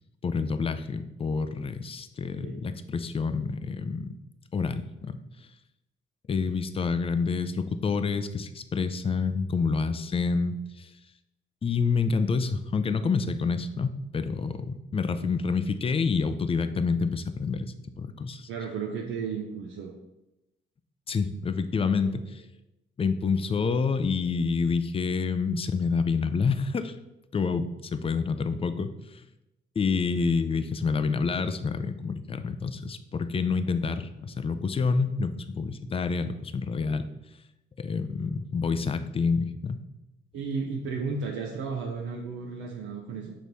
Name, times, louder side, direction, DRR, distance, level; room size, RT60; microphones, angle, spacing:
voice 1, 0.2-4.1 4.5-5.2 6.3-10.9 11.6-18.5 21.1-22.4 23.0-26.9 27.3-29.2 29.8-37.1 37.8-39.8, left 5 dB, 30° left, 11 dB, 0.5 m, -28 dB
voice 2, 18.5-19.9 40.3-43.3, right 5 dB, 85° right, -2 dB, 0.8 m, -33 dB
6.4 x 3.0 x 5.3 m, 0.93 s
cardioid pair, 90°, 20 cm